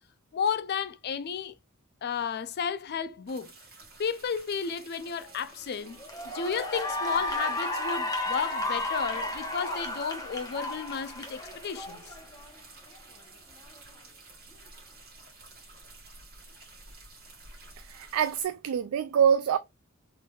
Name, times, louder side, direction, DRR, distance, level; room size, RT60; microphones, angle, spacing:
voice 1, 0.3-1.5 2.0-3.5 4.0-6.0 6.3-12.0, left 6 dB, 50° left, 0.4 m, -32 dB
sound 1, 3.3-18.5, right 3 dB, 50° right, 1.8 m, -52 dB
Cheering / Applause, 5.3-5.5 6.0-12.5, left 2 dB, 15° left, 0.9 m, -33 dB
voice 2, 17.8-19.6, right 8 dB, 85° right, 0.3 m, -25 dB
3.8 x 3.3 x 2.3 m
head